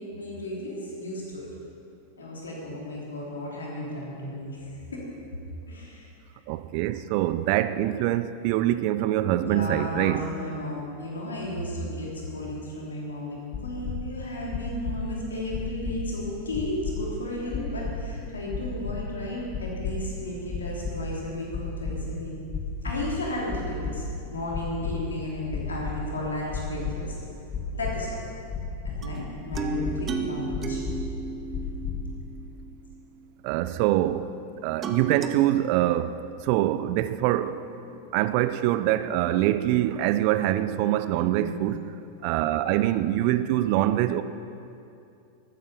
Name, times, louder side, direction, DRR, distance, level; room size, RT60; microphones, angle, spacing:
voice 1, 0.1-1.5 2.2-5.0 5.7-6.1 9.4-22.3 22.8-27.2 27.7-28.2 28.8-30.8 41.3-41.6, left 1 dB, 70° left, 3.3 m, -34 dB
voice 2, 6.5-10.3 33.4-34.3 34.6-36.2 36.4-37.7 38.1-41.8 42.2-44.2, right 13 dB, 45° right, 0.5 m, -24 dB
sound 1, 13.5-13.9 14.5-14.9 15.5-15.9 16.5-17.0 17.5-17.9 18.5-19.0 19.5-19.9 20.5-20.9 21.5-21.9 22.5-23.0 23.5-23.9 24.5-24.9 25.5-25.9 26.5-26.9 27.5-27.9 28.5-28.9 29.5-29.9 30.5-30.9 31.5-31.9, left 7 dB, 25° left, 1.9 m, -32 dB
sound 2, 29.0-33.0 34.8-35.3, right 4 dB, 25° right, 0.9 m, -34 dB
13.0 x 9.2 x 6.8 m
figure-of-eight pair, 90°, 0 cm